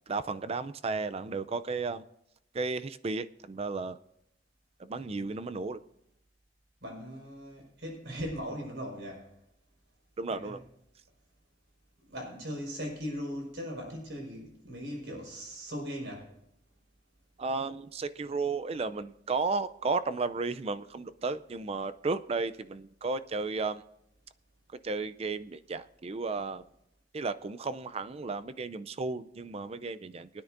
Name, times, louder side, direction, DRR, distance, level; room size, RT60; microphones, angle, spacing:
voice 1, 0.1-2.0 2.5-4.0 4.8-5.8 10.2-10.6 17.4-23.8 24.8-26.6 27.1-30.3, right 4 dB, 35° right, 0.4 m, -33 dB
voice 2, 4.9-5.3 6.8-9.4 10.3-10.6 12.0-16.3, equal, 75° right, 5.1 m, -39 dB
23.0 x 9.8 x 2.6 m
head